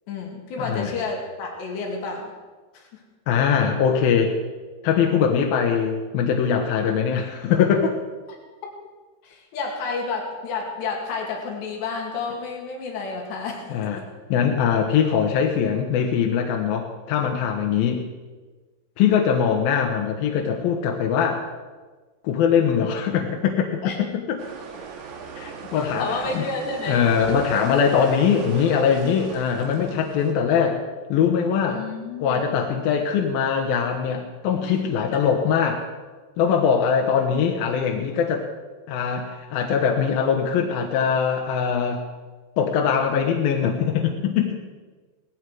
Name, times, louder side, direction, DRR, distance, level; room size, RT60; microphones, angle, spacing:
voice 1, 0.1-2.3 2.7-3.0 8.3-8.7 9.2-14.0 17.7-17.8 23.8-24.0 24.7-24.8 25.7-27.0 27.3-27.4 29.8-30.0 31.7-32.4 34.6-34.8, left 4 dB, 90° left, 1 dB, 4.5 m, -31 dB
voice 2, 3.3-4.4 4.8-8.0 13.7-14.0 14.3-18.0 19.0-21.5 22.2-24.4 25.4-26.4 26.9-30.8 31.1-31.8 32.2-35.8 36.4-38.5 38.9-42.0 42.6-44.6, left 7 dB, 70° left, 2 dB, 2.9 m, -22 dB
sound 1, 24.4-30.3, right 5 dB, 70° right, 4.1 m, -38 dB
18.5 x 15.0 x 4.8 m, 1.3 s
omnidirectional pair, 4.8 m